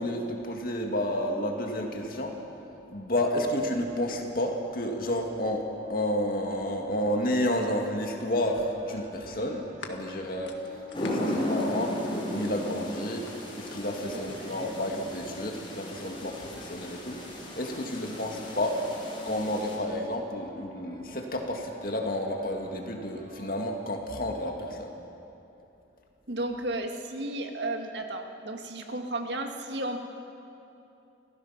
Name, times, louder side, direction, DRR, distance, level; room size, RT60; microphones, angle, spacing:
voice 1, 0.0-2.4 2.9-10.6 11.0-17.2 17.5-18.8 19.3-25.0, left 1 dB, 50° left, 2 dB, 2.2 m, -31 dB
sound 1, 5.8-23.6, right 1 dB, 40° right, 1.5 m, -51 dB
sound 2, 8.5-12.7 13.1-15.2 16.2-17.0, left 3 dB, 85° left, 1.7 m, -49 dB
sound 3, 10.9-19.8, left 1 dB, 30° left, 3.9 m, -35 dB
voice 2, 14.1-14.7 26.3-30.0, right 2 dB, 70° right, 4 dB, 1.7 m, -34 dB
29.5 x 15.0 x 5.9 m, 2.9 s
head